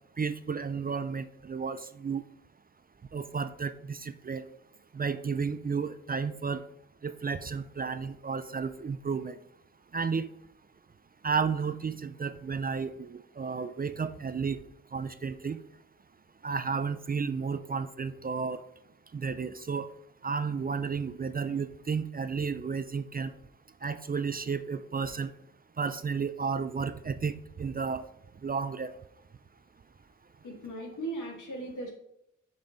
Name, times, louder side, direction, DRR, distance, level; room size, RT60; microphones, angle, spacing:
voice 1, 0.2-2.2 3.1-4.4 4.9-6.6 7.0-9.4 9.9-10.3 11.2-14.6 14.9-15.6 16.4-18.6 19.1-19.9 20.2-23.3 23.8-25.3 25.8-28.0 28.4-28.9, right 5 dB, 30° right, 12 dB, 0.4 m, -32 dB
voice 2, 30.4-31.9, right 2 dB, 75° left, 1 dB, 2.1 m, -37 dB
6.7 x 5.4 x 3.9 m, 0.78 s
cardioid pair, 75°, 31 cm